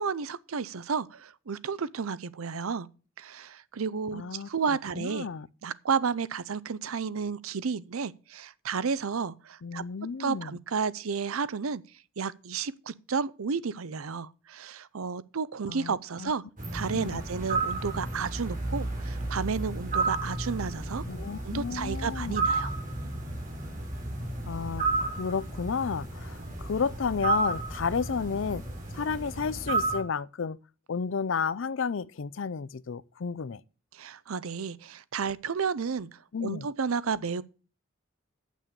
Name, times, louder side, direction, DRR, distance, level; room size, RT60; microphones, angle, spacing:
voice 1, 0.0-2.9 3.2-5.3 5.6-9.8 10.2-11.8 12.2-16.4 16.7-21.0 21.4-22.7 33.9-37.4, right 5 dB, 85° right, 0.6 m, -32 dB
voice 2, 4.1-4.5 5.0-5.5 9.6-10.6 15.7-16.3 16.9-17.2 21.1-22.4 24.5-24.8 25.2-28.6 28.9-30.6 30.9-33.6 36.3-36.7, left 5 dB, 65° left, 0.5 m, -32 dB
sound 1, 16.6-30.0, right 3 dB, 40° right, 3.4 m, -32 dB
8.7 x 6.2 x 8.1 m
head